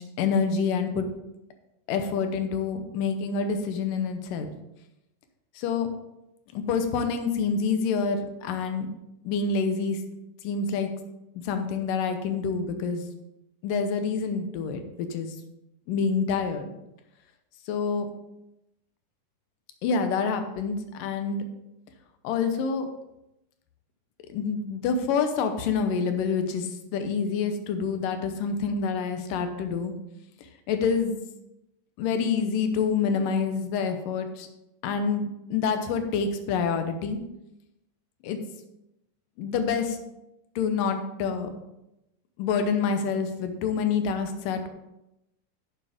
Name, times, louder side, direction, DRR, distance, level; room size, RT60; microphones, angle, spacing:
voice 1, 0.2-1.1 1.9-4.5 5.6-5.9 6.5-8.9 9.3-10.0 10.4-10.9 11.4-13.0 13.6-15.4 15.9-16.7 17.7-18.1 19.8-21.4 22.2-22.9 24.3-29.9 30.7-31.2 32.0-34.5 34.8-35.2 35.5-37.2 38.2-38.4 39.4-40.0 40.6-41.5 42.4-44.7, left 5 dB, 85° left, 7 dB, 2.5 m, -27 dB
9.8 x 7.1 x 3.5 m, 0.89 s
omnidirectional pair, 3.8 m